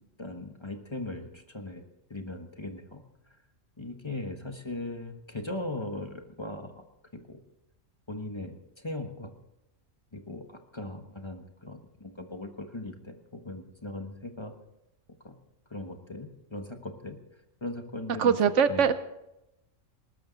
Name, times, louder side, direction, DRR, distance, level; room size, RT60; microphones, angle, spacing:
voice 1, 0.2-1.8 2.1-3.0 3.8-6.8 7.1-7.4 8.1-9.3 10.1-14.5 15.2-15.3 15.7-17.1 17.6-18.3 18.7-18.8, left 2 dB, 20° left, 5 dB, 1.3 m, -39 dB
voice 2, 18.2-19.0, right 7 dB, 70° right, 12 dB, 1.0 m, -22 dB
19.0 x 13.5 x 4.0 m, 0.88 s
omnidirectional pair, 1.4 m